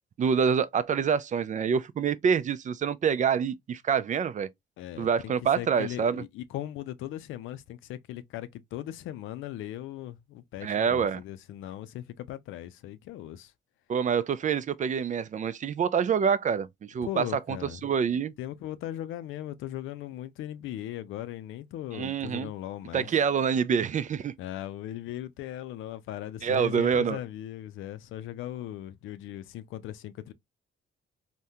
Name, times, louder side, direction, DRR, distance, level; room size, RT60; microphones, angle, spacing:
voice 1, 0.2-4.5 5.0-6.2 10.6-11.2 13.9-17.2 17.8-18.3 21.9-22.5 22.9-24.3 26.4-27.2, right 7 dB, 40° right, 0.4 m, -26 dB
voice 2, 4.8-13.5 17.0-17.8 18.4-23.1 24.4-30.3, left 12 dB, 85° left, 0.5 m, -38 dB
3.5 x 2.2 x 2.6 m
cardioid pair, 90°, 20 cm